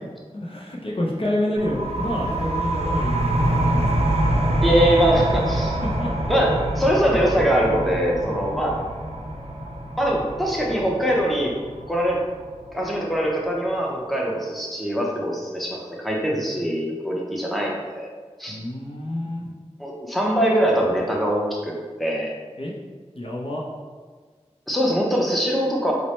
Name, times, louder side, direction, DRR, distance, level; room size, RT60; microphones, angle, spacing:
voice 1, 0.3-4.3 5.7-6.1 18.5-19.5 22.6-22.7 23.1-23.6, left 1 dB, 50° left, -3 dB, 0.6 m, -28 dB
sound 1, 1.6-12.9, right 1 dB, 60° right, 0.5 m, -25 dB
voice 2, 4.6-5.8 6.3-8.7 10.0-11.5 11.9-12.2 12.7-18.1 18.4-18.6 19.8-21.7 22.0-22.3 24.7-25.9, equal, ahead, -2 dB, 0.7 m, -22 dB
4.1 x 2.1 x 3.0 m, 1.5 s
wide cardioid pair, 45°, 12 cm